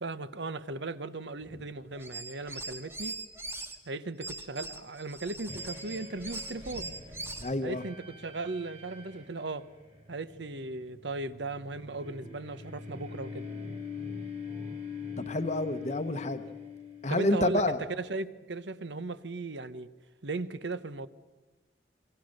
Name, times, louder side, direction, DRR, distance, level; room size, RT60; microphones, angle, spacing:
voice 1, 0.0-3.2 3.9-6.9 7.6-9.7 10.1-13.5 16.5-16.6 17.1-19.9 20.2-21.1, right 3 dB, 70° right, 0.9 m, -37 dB
sound 1, 2.0-3.8 4.2-7.5, right 2 dB, 15° right, 1.5 m, -41 dB
sound 2, 5.5-17.5, left 5 dB, 30° right, 3.0 m, -43 dB
voice 2, 7.4-7.8 15.2-16.4 17.0-17.8, left 1 dB, 35° left, 0.9 m, -29 dB
28.5 x 23.0 x 6.5 m
head